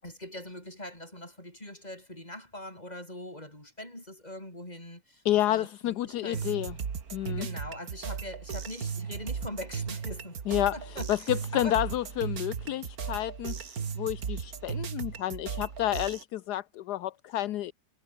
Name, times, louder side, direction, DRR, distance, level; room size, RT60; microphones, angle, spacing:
voice 1, 0.0-6.6 7.4-11.8, left 1 dB, 25° left, 7.6 m, -42 dB
voice 2, 5.2-6.7 7.1-7.5 10.5-10.7 11.1-17.7, left 13 dB, 75° left, 1.3 m, -30 dB
sound 1, 6.3-16.2, right 6 dB, 60° right, 2.2 m, -36 dB
omnidirectional pair, 1.8 m